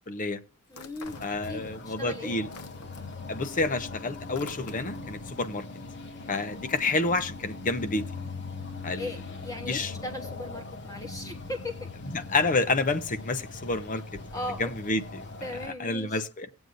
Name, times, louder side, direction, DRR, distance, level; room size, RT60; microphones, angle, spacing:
voice 1, 0.1-0.4 1.2-2.5 3.3-5.6 6.3-8.1 8.8-9.1 9.7-9.9 12.1-14.0 14.6-15.3 15.6-16.5, left 3 dB, 35° left, 0.7 m, -29 dB
sound 1, 0.7-1.9 2.2-5.2, left 4 dB, 90° left, 0.9 m, -48 dB
voice 2, 0.7-2.4 6.5-6.7 9.0-11.9 14.3-14.7 15.4-16.2, left 1 dB, 15° left, 1.1 m, -38 dB
sound 2, 1.0-15.7, left 3 dB, 55° left, 1.5 m, -41 dB
19.0 x 7.9 x 2.6 m
head